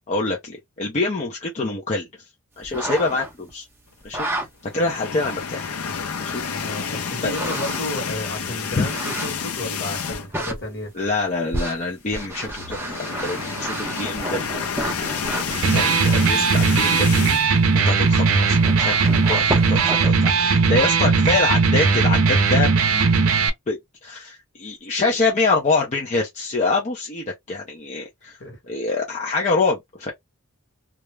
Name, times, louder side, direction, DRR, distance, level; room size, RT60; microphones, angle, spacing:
voice 1, 0.1-2.1 2.6-3.7 4.0-4.5 4.7-5.7 6.2-6.4 7.2-7.5 8.8-8.9 10.9-14.6 15.1-23.1 23.7-28.4 28.7-30.1, left 3 dB, 30° left, 0.5 m, -25 dB
sound 1, 2.6-3.5 4.0-4.5 5.2-5.3 7.2-8.0 8.7-9.5 10.1-10.6 11.5-15.6 17.9-18.0 18.3-20.1, right 1 dB, 10° right, 0.6 m, -30 dB
sound 2, 4.7-10.5 10.8-11.0 11.3-11.4 12.4-17.5, left 6 dB, 80° left, 0.6 m, -29 dB
voice 2, 6.6-10.9 28.2-28.6, left 1 dB, 50° left, 1.2 m, -32 dB
Electric guitar, 15.5-23.5, right 4 dB, 65° right, 0.5 m, -18 dB
2.3 x 2.0 x 3.1 m
head